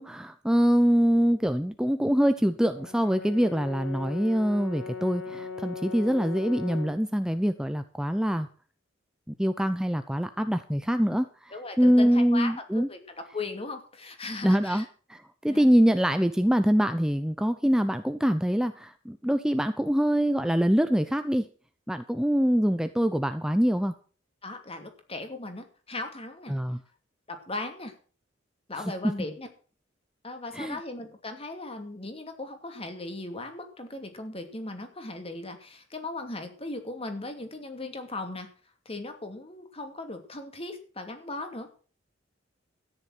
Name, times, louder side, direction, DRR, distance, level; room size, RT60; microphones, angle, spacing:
voice 1, 0.0-8.5 9.3-11.3 11.8-12.9 14.4-14.8 15.1-21.5 21.9-23.9 26.5-26.8 30.5-30.8, equal, 5° right, 9 dB, 0.7 m, -24 dB
Brass instrument, 2.7-7.0, left 4 dB, 80° left, 2.7 m, -39 dB
voice 2, 11.5-13.0 13.3-14.8 15.5-15.7 24.4-26.6 27.3-28.0 28.7-29.5 30.2-38.5 38.8-41.7, left 2 dB, 30° left, 6 dB, 2.6 m, -38 dB
13.5 x 10.5 x 6.2 m, 0.40 s
head